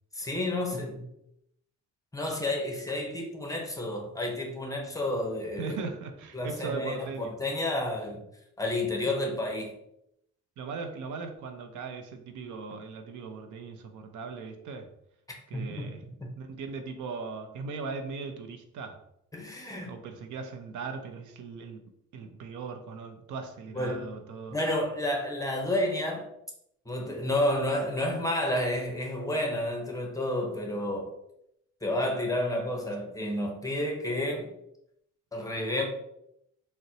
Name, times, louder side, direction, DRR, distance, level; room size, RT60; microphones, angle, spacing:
voice 1, 0.1-1.1 2.1-5.8 6.3-8.2 8.6-9.7 15.5-15.9 19.3-19.9 23.7-24.1 24.5-26.3 26.9-31.1 31.8-34.5 35.3-35.9, left 1 dB, 10° left, 0.7 m, -30 dB
voice 2, 5.6-7.4 10.6-14.9 15.5-16.0 16.4-19.0 19.9-21.8 22.1-24.6, right 4 dB, 75° right, 0.5 m, -38 dB
3.9 x 2.1 x 2.7 m
cardioid pair, 90°, 30 cm